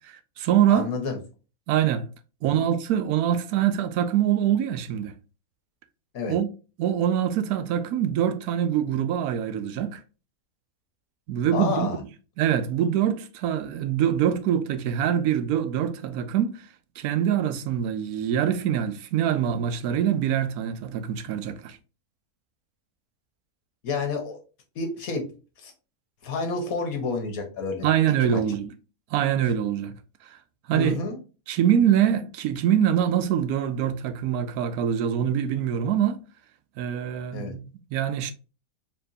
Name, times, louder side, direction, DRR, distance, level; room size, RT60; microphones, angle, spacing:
voice 1, 0.0-0.9 1.7-2.1 2.4-5.1 6.3-6.5 6.8-10.0 11.3-11.9 12.4-16.6 17.0-21.8 27.8-28.7 29.1-29.9 30.3-30.4 30.7-31.0 31.5-36.2 36.8-37.6 37.9-38.3, right 9 dB, 90° right, 1.1 m, -24 dB
voice 2, 0.7-1.2 2.4-2.7 6.1-6.3 11.5-12.0 23.8-24.4 24.7-25.2 25.6-25.7 26.2-27.9 28.2-28.4 30.7-31.2 37.3-37.5, left 4 dB, 75° left, 1.5 m, -29 dB
4.3 x 3.1 x 2.6 m
omnidirectional pair, 1.5 m